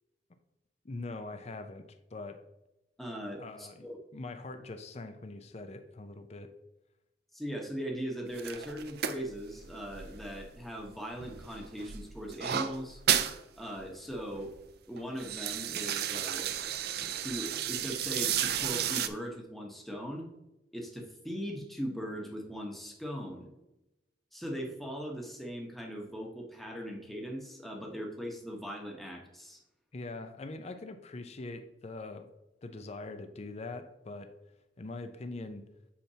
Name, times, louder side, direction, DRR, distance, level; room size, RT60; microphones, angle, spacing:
voice 1, 0.8-2.4 3.4-3.9 4.1-6.5 29.9-32.3 32.6-34.3 34.8-35.6, left 2 dB, 35° left, 8 dB, 0.5 m, -42 dB
voice 2, 3.0-3.9 7.3-13.0 13.6-14.5 14.9-16.5 17.2-20.3 20.7-23.5 24.3-29.6, equal, ahead, 0 dB, 1.0 m, -39 dB
sound 1, 8.3-10.9 11.2-13.4 13.8-13.9 14.1-14.5 15.0-19.1, right 9 dB, 60° right, 0.5 m, -33 dB
8.5 x 5.8 x 2.8 m, 0.93 s
head